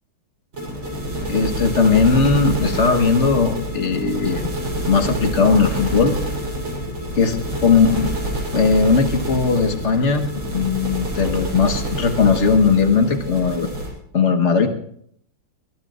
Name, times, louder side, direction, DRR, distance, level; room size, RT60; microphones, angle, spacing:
sound 1, 0.5-13.9, right 1 dB, 80° right, 7.0 m, -27 dB
voice 1, 1.3-4.5 4.9-6.1 7.1-8.1 8.5-13.7 14.1-14.7, left 5 dB, 40° left, 5 dB, 1.3 m, -18 dB
22.5 x 19.5 x 2.5 m, 0.69 s
omnidirectional pair, 2.2 m